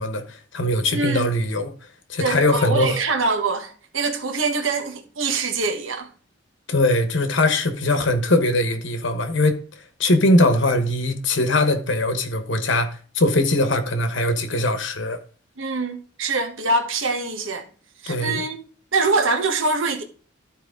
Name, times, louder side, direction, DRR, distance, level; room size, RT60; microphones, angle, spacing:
voice 1, 0.0-1.7 2.1-3.0 6.7-9.6 10.0-15.2 18.1-18.4, left 1 dB, 60° left, 1.1 m, -21 dB
voice 2, 0.9-1.3 2.2-6.1 15.6-17.6 18.0-18.6 18.9-20.0, right 3 dB, 70° right, 1.3 m, -24 dB
13.0 x 4.5 x 3.8 m
head